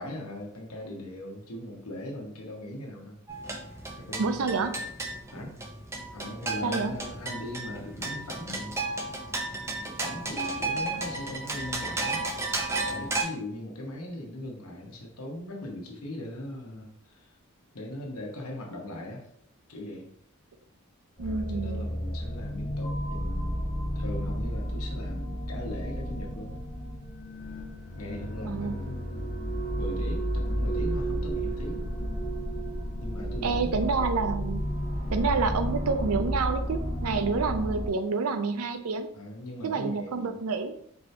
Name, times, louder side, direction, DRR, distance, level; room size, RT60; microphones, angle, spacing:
voice 1, 0.0-3.2 4.0-4.4 5.3-5.5 6.1-8.7 9.6-12.2 12.8-17.3 17.7-19.3 19.7-20.1 21.2-23.6 23.9-26.6 27.9-29.5 29.8-31.8 33.0-33.7 37.1-37.5 39.1-40.3, left 1 dB, 90° left, 0 dB, 1.0 m, -40 dB
sound 1, 3.3-13.2, right 2 dB, 10° right, 0.4 m, -33 dB
voice 2, 4.2-4.8 6.6-6.9 21.2-21.9 28.4-28.7 33.4-34.7 35.1-39.1 39.6-40.8, right 4 dB, 90° right, 9 dB, 0.5 m, -28 dB
sound 2, 21.2-37.9, equal, 25° left, 0.8 m, -32 dB
4.3 x 2.8 x 3.3 m, 0.69 s
head